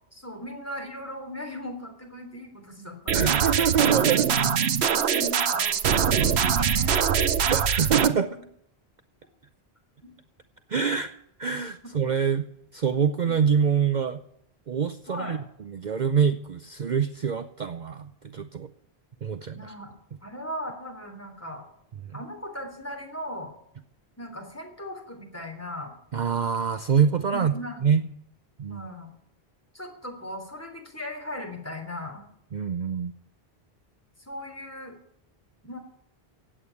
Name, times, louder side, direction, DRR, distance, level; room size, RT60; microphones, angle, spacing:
voice 1, 0.1-3.7 4.1-7.4 10.0-10.1 15.1-15.4 19.5-19.9 20.2-21.7 22.1-23.5 24.2-25.9 27.3-28.1 28.7-29.1 29.7-32.3 34.2-35.0 35.6-35.8, left 1 dB, 15° left, 2 dB, 3.4 m, -38 dB
voice 2, 3.1-4.3 7.4-8.3 10.7-11.1 11.4-12.5 12.7-14.2 14.7-15.4 15.7-18.7 19.2-19.6 26.1-27.5 27.8-28.0 28.6-28.8 32.5-33.1, right 7 dB, 50° right, 10 dB, 0.7 m, -25 dB
sound 1, 3.1-8.1, right 7 dB, 85° right, 1.1 m, -23 dB
16.0 x 8.8 x 8.5 m, 0.72 s
omnidirectional pair, 1.1 m